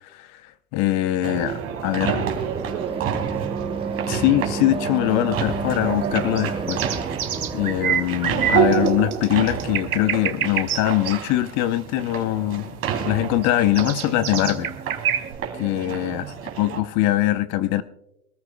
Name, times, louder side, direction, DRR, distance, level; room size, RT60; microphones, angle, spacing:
voice 1, 0.7-1.5 1.8-2.3 4.1-6.8 7.5-12.7 13.0-14.7 15.6-16.3 16.6-17.8, left 14 dB, 45° left, 0.8 m, -22 dB
sound 1, 1.2-16.8, right 7 dB, 35° right, 3.0 m, -29 dB
voice 2, 1.3-4.0 16.0-16.7, right 9 dB, 55° right, 3.9 m, -36 dB
sound 2, 1.5-8.9, right 4 dB, 15° right, 0.9 m, -31 dB
sound 3, 5.3-15.3, right 9 dB, 85° right, 1.3 m, -29 dB
24.0 x 14.0 x 2.3 m
hypercardioid pair, 100°, 42 cm